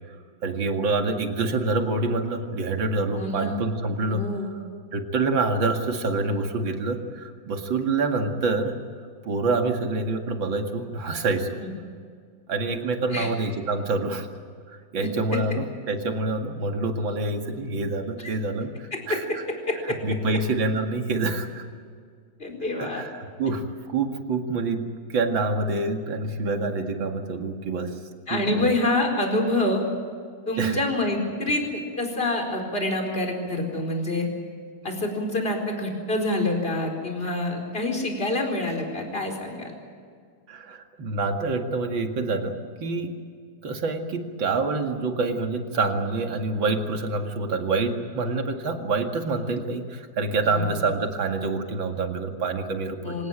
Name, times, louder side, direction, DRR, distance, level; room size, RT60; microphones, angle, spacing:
voice 1, 0.4-4.6 4.9-8.8 9.2-11.6 12.5-14.3 14.7-19.4 19.9-21.6 22.8-24.8 25.1-28.0 28.3-28.7 30.6-30.8 40.5-43.1 43.6-53.2, right 3 dB, 40° right, 4 dB, 2.5 m, -27 dB
voice 2, 3.1-3.6 4.1-4.5 11.6-11.7 13.1-13.3 15.0-15.1 18.2-18.3 18.9-19.2 19.7-20.0 22.4-23.1 28.3-29.8 30.5-34.3 34.8-39.7 50.5-50.8 53.0-53.3, left 1 dB, 15° left, 2 dB, 4.4 m, -27 dB
26.5 x 18.5 x 9.0 m, 2.1 s
omnidirectional pair, 3.5 m